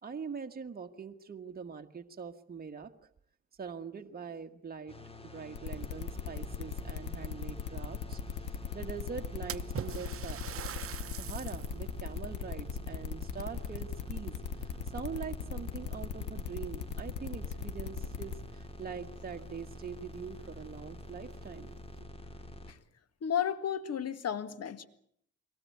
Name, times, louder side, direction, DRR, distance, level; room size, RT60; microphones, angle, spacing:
voice 1, 0.0-3.1 3.6-5.0 5.2-8.2 8.7-10.8 11.2-22.1, right 6 dB, 30° right, 4 dB, 1.6 m, -43 dB
sound 1, 4.9-22.7, left 1 dB, 20° left, 2.7 m, -48 dB
sound 2, 5.5-18.4, left 7 dB, 85° left, 2.9 m, -38 dB
Splash splatter, 9.5-11.8 12.3-12.4 13.3-14.3 14.7-15.2 16.0-16.1 16.5-16.6 18.8-18.9 19.2-19.3 19.9-20.0 20.4-20.5 21.2-21.8, right 9 dB, 45° right, 0.9 m, -43 dB
voice 2, 23.2-24.9, left 8 dB, 55° left, 13 dB, 1.9 m, -33 dB
23.5 x 18.0 x 9.5 m, 0.68 s
cardioid pair, 90°, 30 cm